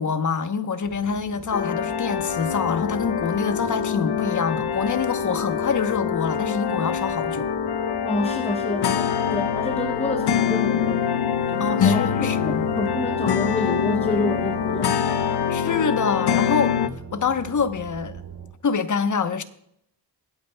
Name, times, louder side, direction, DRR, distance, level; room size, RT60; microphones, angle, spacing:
voice 1, 0.0-7.5 11.6-12.7 15.5-16.8 17.1-18.2 18.6-19.4, left 5 dB, 45° left, 1.0 m, -25 dB
sound 1, 0.8-18.5, right 6 dB, 40° right, 2.8 m, -41 dB
sound 2, 1.5-16.9, left 8 dB, 65° left, 0.7 m, -24 dB
voice 2, 8.0-11.2 11.5-14.9, left 2 dB, 15° left, 0.7 m, -29 dB
22.5 x 8.7 x 2.3 m
wide cardioid pair, 105°, 42 cm